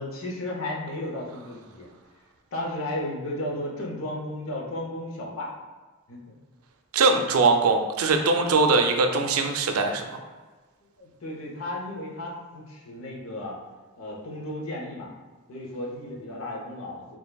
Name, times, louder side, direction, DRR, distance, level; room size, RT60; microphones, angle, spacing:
voice 1, 0.0-1.9 2.5-5.5 6.1-6.4 10.8-13.6 14.0-15.1 15.5-17.2, left 1 dB, 70° left, -2 dB, 0.7 m, -34 dB
voice 2, 6.9-10.2, right 3 dB, 90° right, 4 dB, 0.5 m, -21 dB
4.4 x 2.9 x 2.3 m, 1.3 s
head